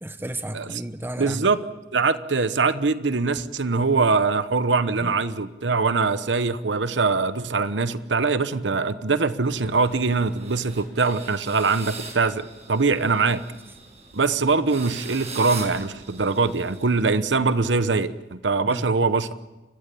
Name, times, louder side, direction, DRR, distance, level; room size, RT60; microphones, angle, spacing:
voice 1, 0.0-1.6 5.0-5.2 18.6-18.9, right 1 dB, 15° right, 9 dB, 1.3 m, -33 dB
voice 2, 1.2-1.6 1.9-13.4 14.1-19.3, right 4 dB, 85° right, 13 dB, 1.0 m, -23 dB
sound 1, 9.4-17.4, right 4 dB, 40° right, 6.6 m, -41 dB
29.5 x 16.0 x 8.5 m, 1.1 s
head